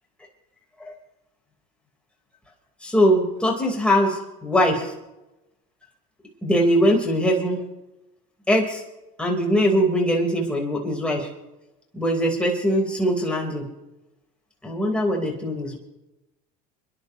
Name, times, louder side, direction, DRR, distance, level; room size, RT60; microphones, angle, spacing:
voice 1, 2.8-4.9 6.4-7.6 8.5-8.8 9.2-11.3 11.9-13.6 14.6-15.8, equal, 5° left, -1 dB, 4.2 m, -21 dB
29.5 x 11.0 x 3.1 m, 0.95 s
hypercardioid pair, 85°, 20 cm